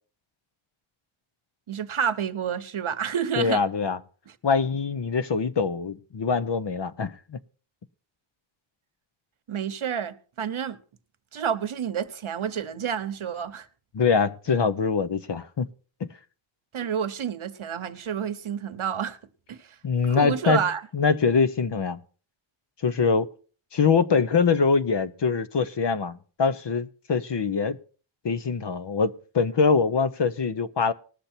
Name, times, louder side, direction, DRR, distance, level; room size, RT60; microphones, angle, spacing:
voice 1, 1.7-3.6 9.5-10.8 11.3-13.7 16.7-19.2 19.5-19.6 20.1-20.8, right 8 dB, 80° right, 0.9 m, -29 dB
voice 2, 3.4-4.0 4.4-7.4 13.9-15.7 16.0-16.1 19.8-20.6 20.9-22.0 22.8-23.3 23.7-27.8 28.2-30.9, left 5 dB, 60° left, 0.8 m, -23 dB
19.5 x 6.7 x 4.3 m
wide cardioid pair, 75°, 48 cm